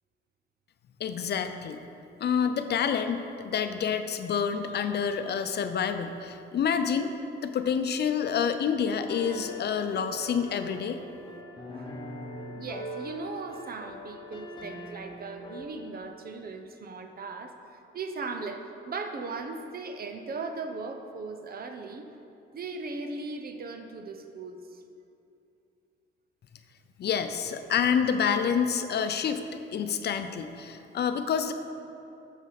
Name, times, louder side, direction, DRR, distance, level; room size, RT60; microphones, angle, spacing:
voice 1, 1.0-1.8 2.2-7.1 7.4-11.0 27.0-29.4 29.7-31.5, left 7 dB, 55° left, 8 dB, 0.7 m, -28 dB
sound 1, 8.9-15.7, equal, 25° left, 1.1 m, -41 dB
voice 2, 12.5-22.1 22.5-24.8, right 3 dB, 50° right, 6 dB, 0.9 m, -38 dB
14.0 x 6.2 x 4.1 m, 2.7 s
cardioid pair, 90°, 20 cm